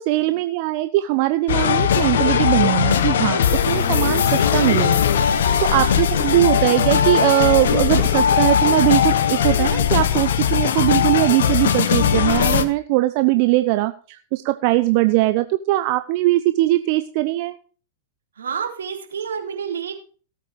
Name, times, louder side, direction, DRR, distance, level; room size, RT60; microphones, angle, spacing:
voice 1, 0.0-17.6, right 18 dB, 50° right, 10 dB, 0.9 m, -20 dB
sound 1, 1.5-12.6, left 8 dB, 70° left, 1.5 m, -19 dB
voice 2, 5.7-6.1 18.4-19.9, right 7 dB, 75° right, 3 dB, 3.7 m, -30 dB
18.0 x 8.3 x 4.8 m, 0.39 s
hypercardioid pair, 105°, 0 cm